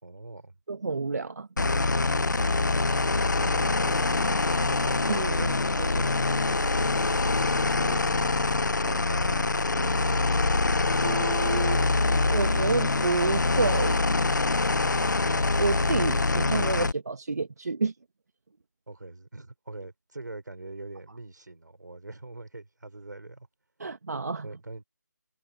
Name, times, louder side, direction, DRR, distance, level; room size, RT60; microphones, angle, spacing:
voice 1, 0.0-0.6 3.4-4.6 5.4-6.6 7.7-8.4 8.7-10.0 18.9-23.5 24.4-24.8, right 2 dB, 85° right, 4.8 m, -42 dB
voice 2, 0.7-1.5 5.0-5.4 11.0-11.8 12.3-14.1 15.6-17.9 23.8-24.5, right 4 dB, 60° right, 1.6 m, -29 dB
sound 1, 1.6-16.9, left 3 dB, 85° left, 1.0 m, -25 dB
figure-of-eight pair, 165°, 10 cm